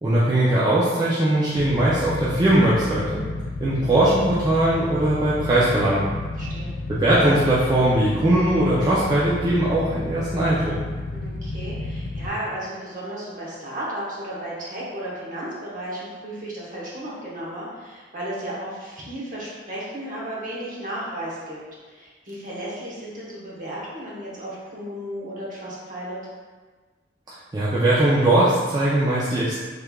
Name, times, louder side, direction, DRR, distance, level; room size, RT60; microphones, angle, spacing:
voice 1, 0.0-3.3 3.6-6.1 7.0-10.7 27.5-29.5, right 1 dB, 20° right, -9 dB, 0.4 m, -20 dB
Motorcycle / Idling, 1.6-12.3, left 2 dB, 70° left, 0.4 m, -31 dB
voice 2, 6.4-6.7 11.1-26.2, right 1 dB, 45° right, -6 dB, 0.9 m, -34 dB
3.4 x 3.2 x 2.3 m, 1.4 s
head